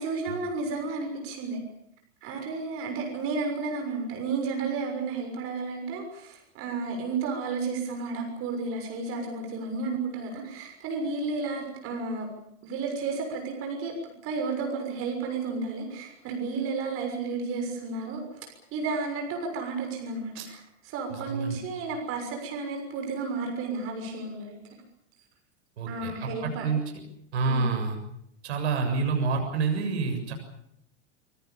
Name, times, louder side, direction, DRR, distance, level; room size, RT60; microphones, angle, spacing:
voice 1, 0.0-1.6 2.2-12.3 12.6-24.6 25.9-26.7 27.4-27.7, right 4 dB, 35° right, 3 dB, 6.5 m, -32 dB
voice 2, 25.8-26.8 27.3-28.0 28.4-30.3, right 4 dB, 60° right, 4 dB, 7.2 m, -28 dB
26.0 x 23.5 x 7.1 m, 0.74 s
figure-of-eight pair, 95°, 38 cm